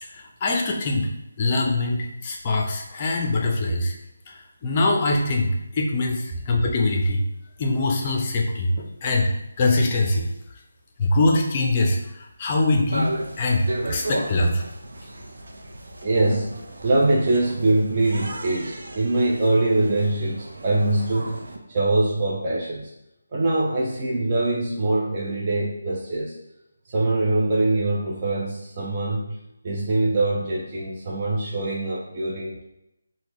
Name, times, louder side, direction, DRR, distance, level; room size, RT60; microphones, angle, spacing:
voice 1, 0.1-1.1 1.4-4.0 4.3-7.2 7.6-9.3 9.6-10.3 11.0-13.1 13.4-14.6, left 2 dB, 30° left, 1 dB, 0.5 m, -23 dB
sound 1, 12.9-21.6, right 1 dB, 75° right, 0.6 m, -35 dB
voice 2, 16.0-22.9 23.3-26.4 26.9-29.4 29.6-32.6, right 2 dB, 30° right, -5 dB, 0.5 m, -23 dB
3.8 x 2.2 x 3.1 m, 0.87 s
figure-of-eight pair, 165°, 0 cm